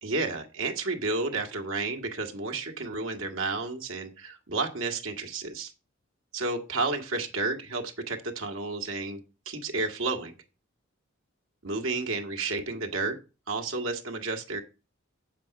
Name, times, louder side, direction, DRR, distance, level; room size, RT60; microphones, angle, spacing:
voice 1, 0.0-5.7 6.3-10.3 11.6-13.2 13.5-14.6, right 3 dB, 80° right, 4 dB, 1.8 m, -31 dB
7.8 x 7.4 x 5.9 m, 0.32 s
head